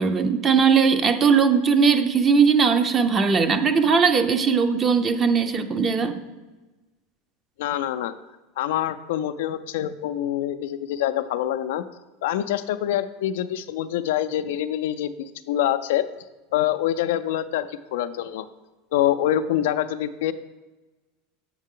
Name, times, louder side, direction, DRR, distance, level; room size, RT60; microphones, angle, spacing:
voice 1, 0.0-6.2, right 5 dB, 25° right, 8 dB, 0.6 m, -19 dB
voice 2, 7.6-8.1 8.6-11.8 12.2-16.0 16.5-18.5 18.9-20.3, left 12 dB, 80° left, 11 dB, 0.4 m, -25 dB
7.3 x 6.4 x 3.8 m, 1.1 s
supercardioid pair, 130°, 0 cm